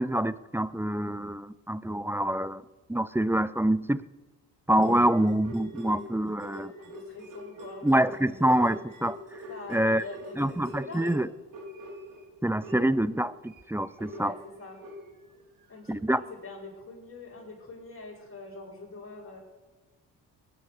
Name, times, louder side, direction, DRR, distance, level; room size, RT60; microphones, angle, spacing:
voice 1, 0.0-2.6 2.9-4.0 4.7-6.7 7.8-9.2 9.7-10.0 10.4-11.3 12.4-14.4 15.9-16.2, right 1 dB, 5° right, 17 dB, 0.6 m, -26 dB
sound 1, 4.7-12.2 12.6-15.4 15.9-16.0, equal, 50° right, 4.2 m, -43 dB
voice 2, 6.8-8.3 9.5-11.2 14.2-14.8 15.7-19.4, left 3 dB, 30° left, -4 dB, 7.5 m, -44 dB
20.5 x 10.0 x 6.7 m, 1.2 s
supercardioid pair, 65°, 42 cm